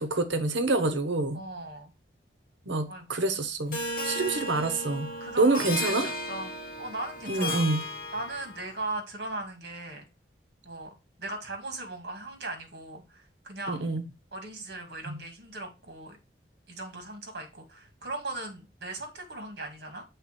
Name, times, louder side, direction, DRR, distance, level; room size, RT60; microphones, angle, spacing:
voice 1, 0.0-1.4 2.7-5.1 5.4-6.1 7.3-7.8 13.7-14.0 15.1-15.2, right 2 dB, 80° right, 1.0 m, -27 dB
voice 2, 1.3-1.9 2.9-3.3 5.2-6.5 6.8-7.7 8.1-10.1 10.6-10.9 11.2-13.9 14.3-16.2 16.7-20.1, right 2 dB, 60° right, 2.0 m, -38 dB
Harp, 3.7-8.7, left 1 dB, 45° left, 1.7 m, -35 dB
7.2 x 3.6 x 4.3 m
head